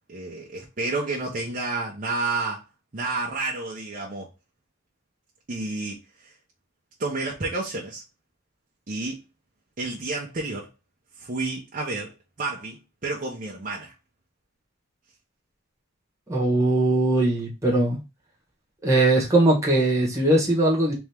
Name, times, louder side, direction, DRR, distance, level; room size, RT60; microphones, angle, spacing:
voice 1, 0.1-2.6 2.9-4.3 5.5-6.3 7.0-8.0 8.9-9.2 9.8-10.7 11.2-13.9, right 3 dB, 40° right, 0.8 m, -30 dB
voice 2, 16.3-18.0 18.8-20.9, right 2 dB, 15° right, 1.5 m, -20 dB
3.5 x 3.1 x 3.5 m
head